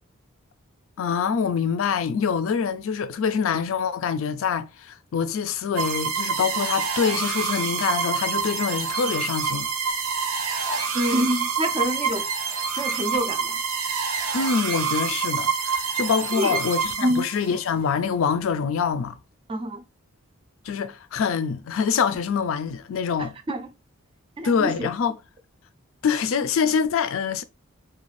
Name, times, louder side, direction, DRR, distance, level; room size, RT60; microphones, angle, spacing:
voice 1, 1.0-9.7 14.3-19.2 20.6-23.4 24.4-25.2 26.0-27.4, left 6 dB, 70° left, 0.4 m, -25 dB
sound 1, 5.8-17.6, right 5 dB, 85° right, 0.6 m, -27 dB
voice 2, 10.9-12.3 12.7-13.6 16.3-16.6 17.0-17.3 19.5-19.8 23.2-23.7 24.4-24.9, equal, 25° right, 0.3 m, -26 dB
2.5 x 2.3 x 3.1 m
head